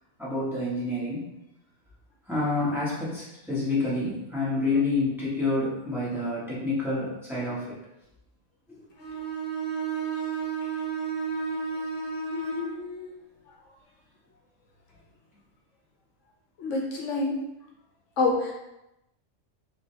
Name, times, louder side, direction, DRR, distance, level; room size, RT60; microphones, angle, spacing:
voice 1, 0.2-1.3 2.3-7.8 8.7-8.8, left 2 dB, ahead, -9 dB, 1.5 m, -28 dB
Bowed string instrument, 9.0-12.8, right 5 dB, 50° left, 1.1 m, -32 dB
voice 2, 12.3-13.1 13.5-13.6 16.6-17.5 18.2-18.5, left 3 dB, 70° left, -1 dB, 1.0 m, -28 dB
5.3 x 2.9 x 3.4 m, 0.91 s
omnidirectional pair, 1.4 m